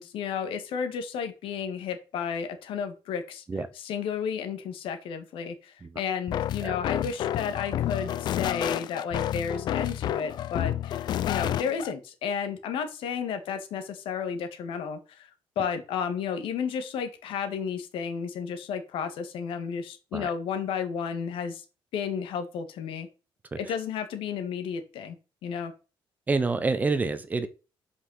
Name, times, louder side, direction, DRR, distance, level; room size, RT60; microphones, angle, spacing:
voice 1, 0.0-3.4 3.8-15.3 15.5-21.6 21.9-23.1 23.6-25.1 25.4-25.7, left 7 dB, 75° left, 1.7 m, -32 dB
sound 1, 6.3-11.9, left 11 dB, 55° left, 0.5 m, -30 dB
voice 2, 26.3-27.5, right 3 dB, 20° right, 0.7 m, -28 dB
5.9 x 5.5 x 6.3 m
cardioid pair, 170°, 9 cm